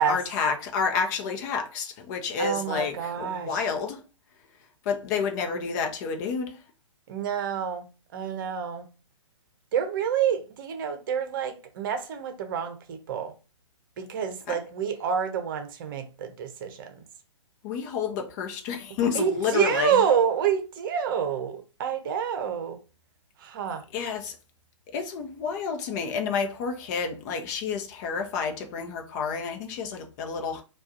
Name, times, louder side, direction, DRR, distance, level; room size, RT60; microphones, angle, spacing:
voice 1, 0.0-4.0 4.8-6.6 14.5-14.6 17.6-20.0 23.9-24.4 24.9-30.6, left 6 dB, 35° left, 0.8 m, -29 dB
voice 2, 2.4-3.6 7.1-7.8 8.1-8.9 9.7-13.3 14.0-16.9 19.1-22.8 23.4-23.8, right 8 dB, 45° right, 0.8 m, -28 dB
4.7 x 2.4 x 2.7 m
figure-of-eight pair, 125°, 16 cm